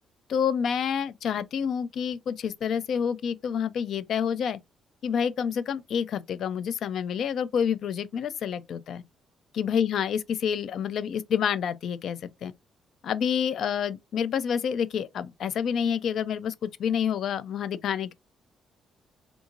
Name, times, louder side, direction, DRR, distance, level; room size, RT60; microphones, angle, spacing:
voice 1, 0.3-4.6 5.0-9.0 9.5-12.5 13.0-16.5 16.8-18.1, left 7 dB, 65° left, 0.4 m, -28 dB
3.5 x 2.5 x 2.8 m
cardioid pair, 90°, 0 cm